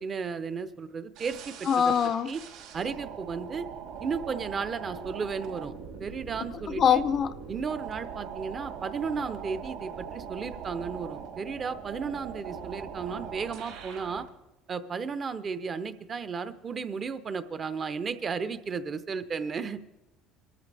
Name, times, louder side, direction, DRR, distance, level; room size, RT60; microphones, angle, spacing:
voice 1, 0.0-2.4 2.7-3.7 4.0-7.0 7.5-14.3 14.7-19.8, right 5 dB, 30° right, 0.7 m, -34 dB
sound 1, 1.1-14.3, right 7 dB, 75° right, 4.9 m, -41 dB
voice 2, 1.7-2.3 6.8-7.3, left 8 dB, 35° left, 0.5 m, -23 dB
26.5 x 13.5 x 3.4 m
cardioid pair, 150°, 0 cm